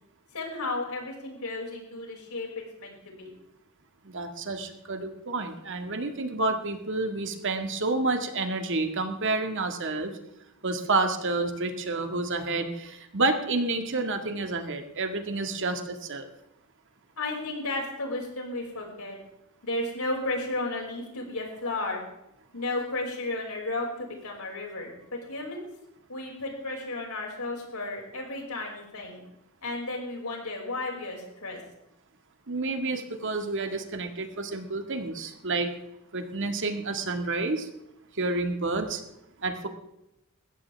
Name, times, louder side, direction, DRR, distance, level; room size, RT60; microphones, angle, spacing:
voice 1, 0.3-2.5 2.8-3.3 17.2-19.2 19.6-22.0 22.5-25.6 26.1-29.2 29.6-31.6, left 2 dB, 85° left, 0 dB, 5.9 m, -33 dB
voice 2, 4.0-10.1 10.6-16.3 32.5-35.7 36.1-37.7 38.1-39.0 39.4-39.7, right 3 dB, 60° right, 6 dB, 1.9 m, -29 dB
20.5 x 16.0 x 3.5 m, 0.88 s
head